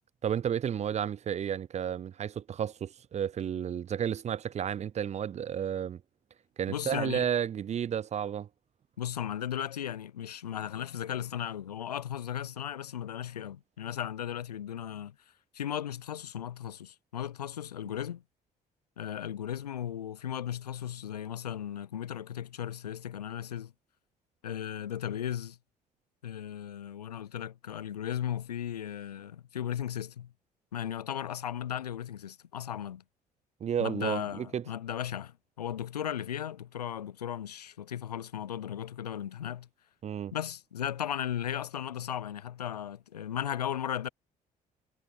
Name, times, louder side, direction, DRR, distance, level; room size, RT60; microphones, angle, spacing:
voice 1, 0.2-6.0 6.6-8.5 33.6-34.6 40.0-40.3, right 9 dB, 35° right, 0.5 m, -32 dB
voice 2, 6.7-7.3 9.0-15.2 15.5-18.2 19.0-23.7 24.4-25.6 26.2-30.3 30.7-33.0 33.8-39.7 40.3-44.1, left 10 dB, 85° left, 0.5 m, -36 dB
figure-of-eight pair, 50°, 20 cm